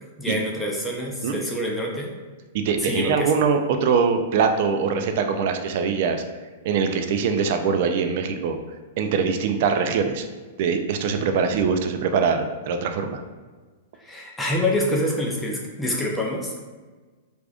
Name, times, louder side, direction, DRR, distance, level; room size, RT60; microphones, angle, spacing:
voice 1, 0.2-2.1 2.8-3.3 14.0-16.6, left 1 dB, 5° left, -2 dB, 0.5 m, -26 dB
voice 2, 2.5-6.2 6.6-8.6 9.0-10.3 10.6-13.2, right 5 dB, 50° right, 6 dB, 0.3 m, -22 dB
4.7 x 2.5 x 2.4 m, 1.4 s
hypercardioid pair, 155°, 0 cm